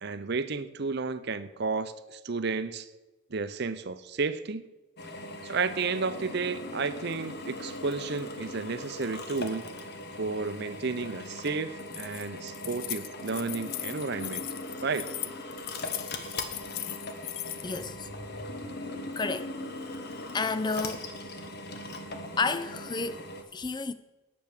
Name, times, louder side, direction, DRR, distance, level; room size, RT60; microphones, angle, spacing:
voice 1, 0.0-2.9 3.3-4.6 5.4-9.7 10.2-14.5 14.8-15.1, right 4 dB, 50° right, 0.6 m, -32 dB
Drill, 5.0-23.4, left 2 dB, 45° left, 1.1 m, -40 dB
Keys jangling, 11.8-17.8, left 14 dB, 70° left, 0.5 m, -38 dB
voice 2, 17.6-18.5 19.2-19.5 20.3-21.1 22.4-23.9, left 4 dB, 20° left, 0.4 m, -31 dB
10.5 x 7.2 x 6.6 m
head